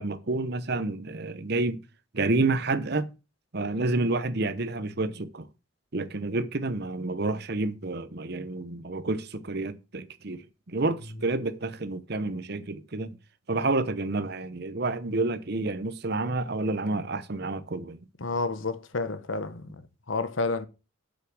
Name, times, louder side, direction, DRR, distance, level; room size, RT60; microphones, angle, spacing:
voice 1, 0.0-1.8 2.1-3.1 3.5-5.5 5.9-13.2 13.5-18.0, right 2 dB, 55° right, 0.9 m, -29 dB
voice 2, 18.2-19.8 20.1-20.7, left 3 dB, 75° left, 1.1 m, -30 dB
7.6 x 7.0 x 6.1 m
head